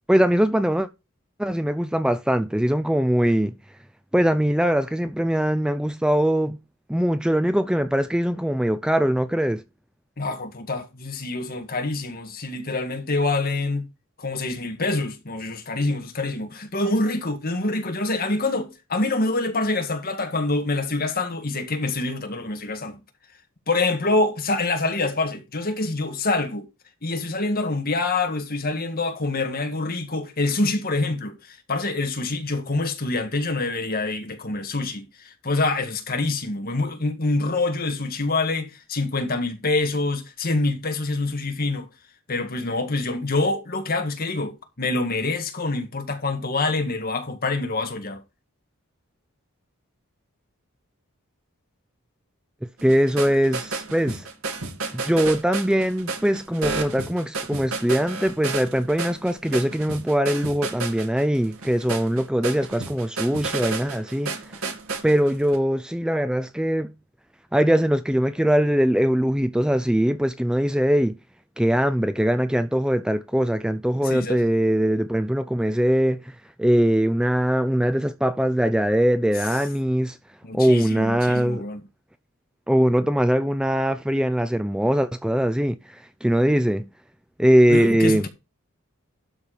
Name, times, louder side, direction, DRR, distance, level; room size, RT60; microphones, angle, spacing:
voice 1, 0.1-0.9 1.4-3.5 4.1-6.6 6.9-9.6 52.8-54.3 54.9-64.3 65.0-66.9 67.5-71.1 71.6-80.2 80.5-81.6 82.7-86.9 87.4-88.3, equal, 5° right, 0.4 m, -21 dB
voice 2, 10.2-13.9 14.2-23.0 23.7-26.7 27.0-41.9 42.3-48.2 74.0-74.4 80.4-81.8 87.7-88.3, left 2 dB, 45° left, 1.9 m, -26 dB
sound 1, 52.8-65.6, right 3 dB, 85° right, 2.2 m, -32 dB
12.0 x 4.5 x 5.1 m
head